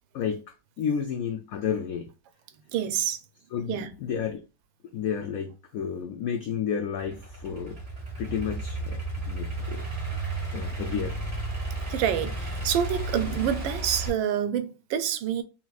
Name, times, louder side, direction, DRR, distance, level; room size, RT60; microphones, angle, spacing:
voice 1, 0.1-2.1 3.5-4.4 4.9-7.8 8.2-9.8 10.5-11.2, left 7 dB, 90° left, 0.7 m, -31 dB
voice 2, 2.7-3.2 3.7-3.9 11.9-15.4, right 9 dB, 90° right, 1.4 m, -27 dB
Idling / Accelerating revving vroom, 7.0-14.1, right 2 dB, 20° right, 1.5 m, -33 dB
5.7 x 2.9 x 2.3 m
omnidirectional pair, 2.0 m